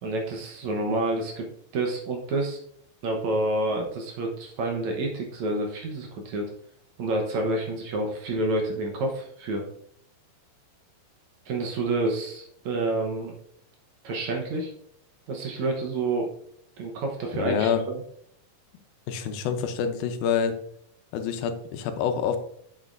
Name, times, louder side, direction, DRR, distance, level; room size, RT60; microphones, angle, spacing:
voice 1, 0.0-1.5 1.7-2.6 3.0-6.4 7.0-9.6 11.5-13.3 14.0-14.7 15.3-16.3 16.8-18.0, right 2 dB, 65° right, 2 dB, 2.1 m, -28 dB
voice 2, 17.4-17.8 19.1-20.6 21.1-22.4, left 7 dB, 90° left, 8 dB, 2.6 m, -26 dB
8.2 x 7.8 x 2.6 m, 0.68 s
omnidirectional pair, 4.1 m